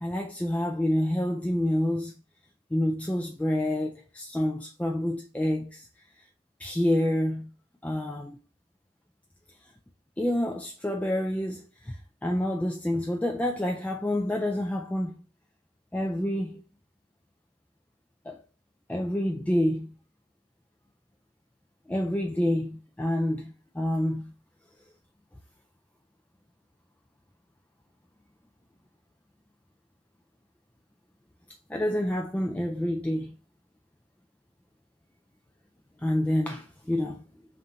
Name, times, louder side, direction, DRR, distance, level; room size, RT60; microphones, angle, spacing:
voice 1, 0.0-2.1 2.7-5.9 6.6-7.5 7.8-8.4 10.2-15.2 15.9-16.6 18.3-18.4 18.9-19.9 21.9-24.3 31.7-33.3 36.0-37.2, left 1 dB, 10° left, 0.3 m, -28 dB
5.4 x 2.6 x 2.9 m
head